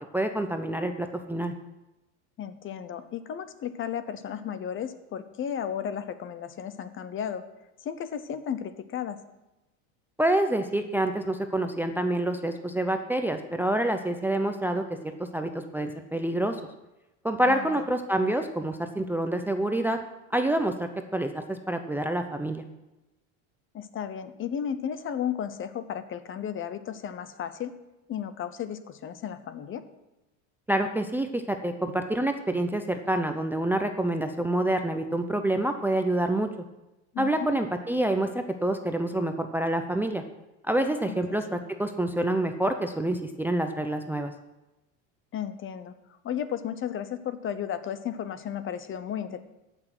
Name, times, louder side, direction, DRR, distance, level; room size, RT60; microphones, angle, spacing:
voice 1, 0.1-1.5 10.2-16.6 17.2-20.0 20.3-22.6 30.7-36.5 37.2-40.2 40.7-44.3, right 1 dB, 5° right, 6 dB, 0.6 m, -27 dB
voice 2, 2.4-7.4 7.8-9.2 17.5-17.9 23.7-27.7 28.1-29.8 37.1-37.5 41.1-41.6 45.3-45.9 46.2-49.4, left 9 dB, 35° left, 12 dB, 0.8 m, -34 dB
14.5 x 6.2 x 6.0 m, 1.0 s
supercardioid pair, 120°, 37 cm